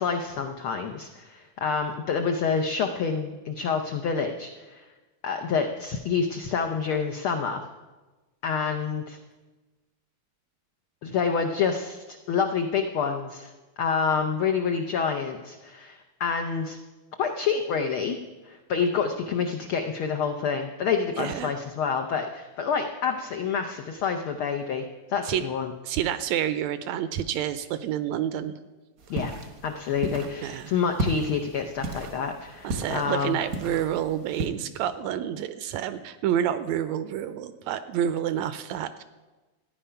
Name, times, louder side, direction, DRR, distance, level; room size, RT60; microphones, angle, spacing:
voice 1, 0.0-4.8 5.2-7.6 8.4-9.2 11.0-16.8 17.2-18.2 18.4-25.7 29.1-29.3 29.6-33.4, left 6 dB, 90° left, 5 dB, 1.1 m, -28 dB
voice 2, 21.2-21.5 25.3-25.4 25.8-28.5 30.4-30.7 32.6-39.0, right 10 dB, 80° right, 12 dB, 1.7 m, -28 dB
sound 1, 29.0-34.5, right 2 dB, 65° right, 0.8 m, -34 dB
14.0 x 9.9 x 5.6 m, 1.2 s
omnidirectional pair, 3.4 m